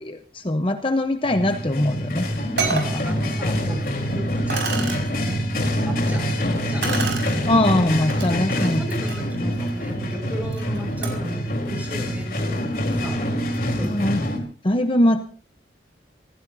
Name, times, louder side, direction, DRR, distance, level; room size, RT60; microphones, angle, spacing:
voice 1, 0.0-2.3 2.7-3.0 7.5-8.8 13.8-14.2 14.6-15.2, left 1 dB, 30° left, 7 dB, 0.9 m, -21 dB
sound 1, 1.2-14.4, equal, 55° left, 3.7 m, -25 dB
sound 2, 2.0-2.1 2.6-2.9 3.8-3.9 4.5-5.0 6.8-7.3 8.1-8.3 8.8-11.3, right 5 dB, 85° right, 5.5 m, -30 dB
voice 2, 2.6-3.8 4.1-6.9 8.2-13.2 13.7-14.2, equal, 10° right, 3 dB, 5.7 m, -35 dB
27.0 x 16.0 x 2.7 m, 0.39 s
head